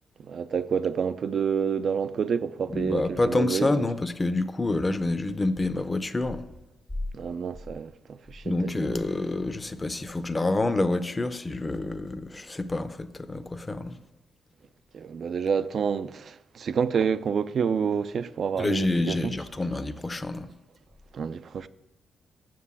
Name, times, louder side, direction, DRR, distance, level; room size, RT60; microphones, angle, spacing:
voice 1, 0.2-3.9 7.1-9.0 14.9-19.4 21.1-21.7, right 6 dB, 60° right, 0.5 m, -28 dB
voice 2, 2.7-6.5 8.4-13.9 18.6-20.5, left 2 dB, 20° left, 0.7 m, -27 dB
7.7 x 6.8 x 8.3 m
cardioid pair, 95°, 0 cm